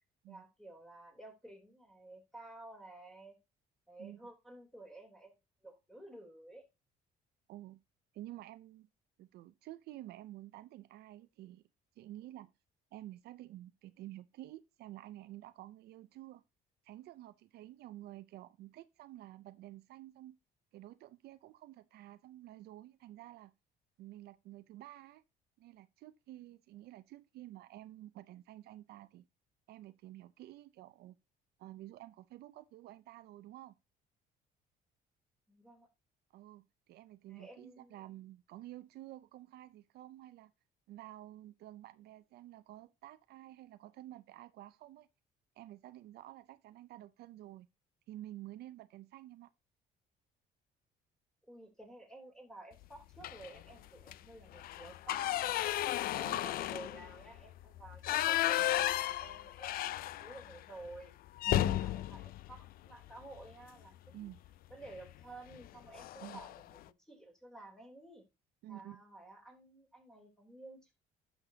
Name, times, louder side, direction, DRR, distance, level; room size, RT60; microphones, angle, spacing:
voice 1, 0.3-3.4 3.9-5.4 5.6-6.6 35.5-35.9 37.3-38.0 51.5-55.7 56.1-61.1 61.5-64.3 64.7-68.2 68.7-70.9, right 2 dB, 5° left, 3.3 m, -53 dB
voice 2, 7.5-7.8 8.1-8.9 9.2-11.6 12.0-12.5 12.9-16.4 16.8-20.3 20.7-23.5 24.0-25.2 25.6-29.3 29.7-31.2 31.6-33.7 36.3-40.5 40.9-45.1 45.6-47.7 48.1-49.5 56.2-56.5 61.5-61.8 64.1-64.4 66.2-66.4 68.6-69.0, right 15 dB, 70° right, 0.5 m, -50 dB
sound 1, 53.2-53.6 54.0-54.2 54.5-60.6 60.9-61.0 61.4-63.5 64.9-65.1 65.5-65.7 66.0-66.6, left 14 dB, 60° left, 0.4 m, -34 dB
11.0 x 6.6 x 2.8 m
cardioid pair, 110°, 17 cm